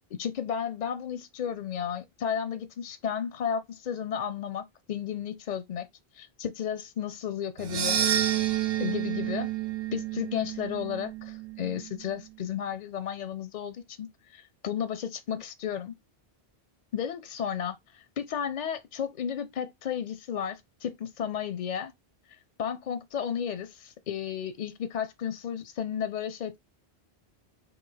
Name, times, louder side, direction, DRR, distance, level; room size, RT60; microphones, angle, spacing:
voice 1, 0.1-5.9 6.1-8.2 8.8-9.5 9.9-15.9 16.9-21.9 22.6-26.6, left 8 dB, 55° left, 0.5 m, -33 dB
sound 1, 7.6-11.9, right 10 dB, 75° right, 0.8 m, -30 dB
4.7 x 2.4 x 3.8 m
omnidirectional pair, 1.1 m